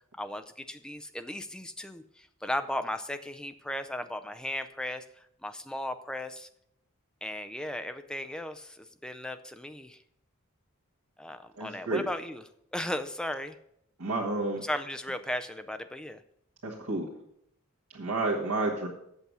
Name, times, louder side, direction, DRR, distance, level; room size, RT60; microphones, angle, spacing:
voice 1, 0.2-5.0 5.4-6.5 7.2-10.0 11.2-12.4 12.7-13.6 14.6-16.2, left 1 dB, 5° left, 9 dB, 0.4 m, -36 dB
voice 2, 11.6-12.0 14.0-14.6 16.6-17.1 17.9-18.9, right 2 dB, 85° right, -5 dB, 1.6 m, -30 dB
8.1 x 6.9 x 6.1 m, 0.76 s
head